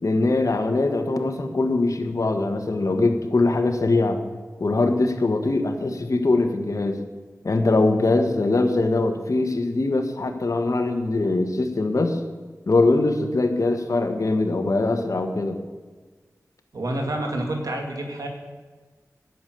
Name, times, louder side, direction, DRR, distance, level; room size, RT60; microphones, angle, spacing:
voice 1, 0.0-4.2 4.6-7.0 7.4-12.2 12.7-15.6, left 2 dB, 65° left, 5 dB, 1.4 m, -22 dB
voice 2, 16.7-18.3, right 1 dB, 80° right, 2 dB, 2.3 m, -28 dB
11.0 x 6.9 x 9.4 m, 1.4 s
wide cardioid pair, 50°, 6 cm